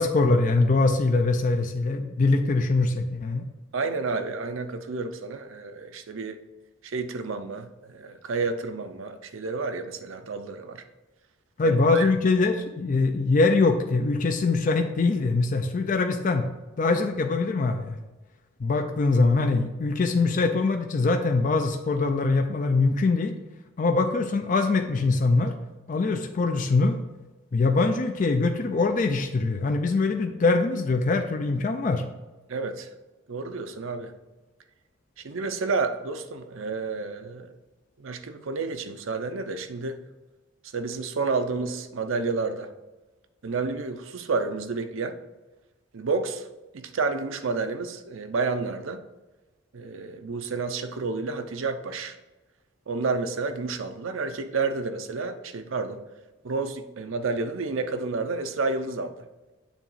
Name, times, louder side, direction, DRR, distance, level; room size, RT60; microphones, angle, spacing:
voice 1, 0.0-3.4 11.6-16.5 16.8-18.0 18.6-23.4 23.8-25.5 25.9-27.0 27.5-32.0, left 3 dB, 40° left, 5 dB, 0.4 m, -23 dB
voice 2, 3.7-6.4 6.8-10.8 11.6-12.1 32.5-32.9 33.3-34.1 35.2-37.5 38.0-40.0 40.7-42.7 43.4-45.2 45.9-46.5 46.7-49.0 49.7-52.2 52.9-56.0 56.4-59.3, right 4 dB, 75° right, 8 dB, 0.5 m, -30 dB
7.1 x 3.0 x 5.5 m, 1.1 s
head